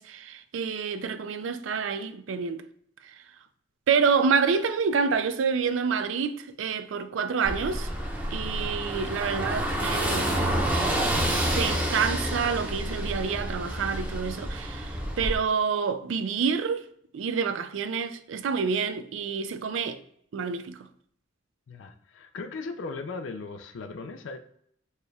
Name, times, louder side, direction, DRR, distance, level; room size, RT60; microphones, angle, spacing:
voice 1, 0.0-2.6 3.0-3.1 3.9-7.9 8.3-10.6 11.5-16.8 17.1-20.0 20.3-20.8, right 5 dB, 85° right, 0.4 m, -28 dB
Car passing by / Engine, 7.4-15.3, right 1 dB, 10° right, 0.6 m, -28 dB
voice 2, 21.7-24.4, left 4 dB, 80° left, 0.4 m, -37 dB
4.4 x 2.3 x 3.2 m
head